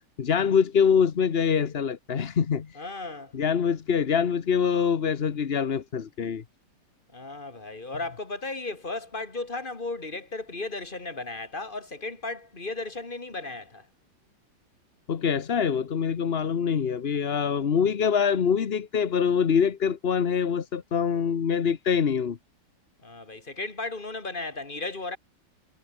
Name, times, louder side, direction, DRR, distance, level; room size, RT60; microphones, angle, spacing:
voice 1, 0.2-2.8 3.3-6.4 15.1-22.4, left 7 dB, 40° left, 0.9 m, -24 dB
voice 2, 2.7-3.3 7.1-13.9 23.0-25.2, left 3 dB, 25° left, 2.8 m, -35 dB
omnidirectional pair, 2.3 m